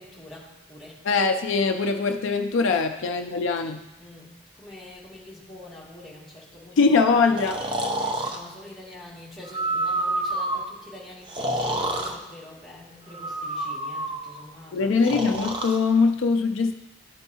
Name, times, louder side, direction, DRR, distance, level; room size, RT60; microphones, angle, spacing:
voice 1, 0.0-1.1 4.0-7.6 7.9-15.0, left 1 dB, ahead, -6 dB, 1.9 m, -45 dB
voice 2, 1.1-3.8 6.8-7.6 14.7-16.7, left 4 dB, 70° left, 5 dB, 0.4 m, -22 dB
Breathing, 7.4-8.4 9.5-10.7 11.3-12.1 13.1-14.4 15.0-15.8, right 1 dB, 25° right, 0.5 m, -28 dB
13.0 x 4.5 x 2.8 m, 1.0 s
head